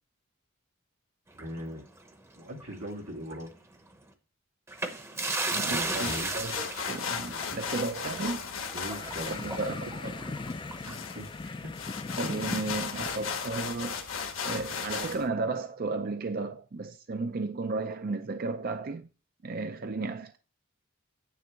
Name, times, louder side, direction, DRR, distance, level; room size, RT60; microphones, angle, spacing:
sound 1, 1.3-2.9 3.2-3.4 4.7-11.2, right 2 dB, 15° right, 0.8 m, -36 dB
voice 1, 1.4-1.8 2.4-3.5 5.7-6.3 7.2-7.5 8.7-9.6 11.2-11.3, equal, 90° right, 2.0 m, -39 dB
voice 2, 5.5-6.5 6.8-8.5 9.3-10.2 10.8-11.0 12.2-14.1 14.4-19.1 19.4-20.4, right 3 dB, 45° right, 0.5 m, -34 dB
sound 2, 5.7-15.2, left 6 dB, 70° left, 1.3 m, -37 dB
sound 3, 8.7-13.7, left 3 dB, 25° left, 0.4 m, -39 dB
9.5 x 3.5 x 7.0 m
head